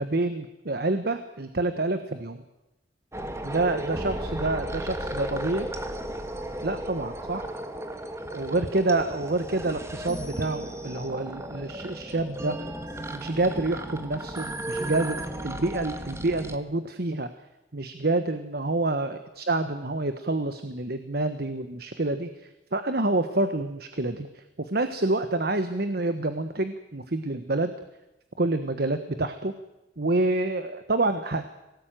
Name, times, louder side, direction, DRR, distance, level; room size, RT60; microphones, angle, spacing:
voice 1, 0.0-2.4 3.4-5.7 6.6-7.5 8.3-12.5 13.1-17.3 17.7-27.7 28.4-29.5 30.0-31.5, right 2 dB, 55° right, 10 dB, 1.3 m, -28 dB
sound 1, 3.1-16.6, right 1 dB, 15° right, 1.5 m, -35 dB
23.0 x 18.0 x 9.2 m, 0.98 s
head